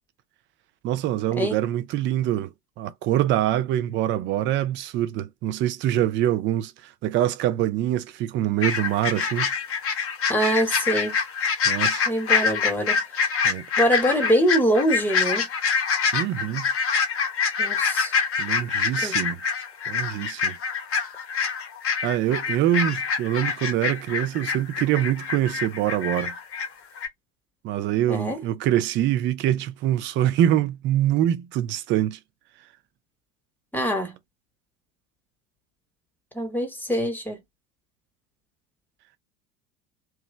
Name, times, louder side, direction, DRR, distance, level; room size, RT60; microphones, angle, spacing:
voice 1, 0.8-9.5 11.7-12.1 13.4-13.7 16.1-16.7 18.4-19.4 19.9-20.6 22.0-26.3 27.6-32.2, right 12 dB, 25° right, 0.4 m, -24 dB
sound 1, 8.6-26.7 27.0-27.1, left 6 dB, 30° left, 0.8 m, -25 dB
voice 2, 10.3-11.2 12.1-13.0 13.8-15.5 17.6-18.1 19.0-19.2 28.1-28.4 33.7-34.2 36.3-37.4, equal, 5° left, 1.0 m, -24 dB
3.0 x 2.3 x 3.2 m
figure-of-eight pair, 75°, 47 cm